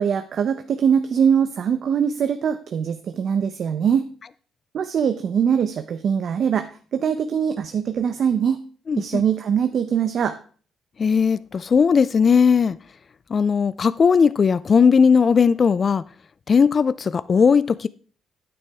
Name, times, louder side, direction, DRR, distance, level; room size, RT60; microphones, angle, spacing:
voice 1, 0.0-4.0 4.7-8.6 9.0-10.4, right 7 dB, 60° right, 0.7 m, -22 dB
voice 2, 8.9-9.2 11.0-12.8 13.3-16.0 16.5-17.9, left 6 dB, 45° left, 0.3 m, -17 dB
9.6 x 8.7 x 3.5 m
cardioid pair, 90°, 0 cm